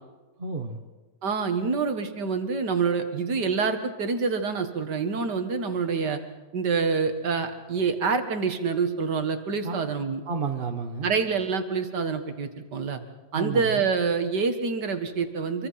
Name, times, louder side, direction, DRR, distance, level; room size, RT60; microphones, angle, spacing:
voice 1, 0.4-0.8 9.6-10.0 10.2-11.1 13.3-13.9, right 4 dB, 35° right, 5 dB, 1.6 m, -32 dB
voice 2, 1.2-6.2 6.5-10.2 11.0-13.0 13.3-15.7, right 5 dB, 85° right, 7 dB, 2.3 m, -26 dB
26.5 x 24.0 x 5.8 m, 1.2 s
omnidirectional pair, 1.8 m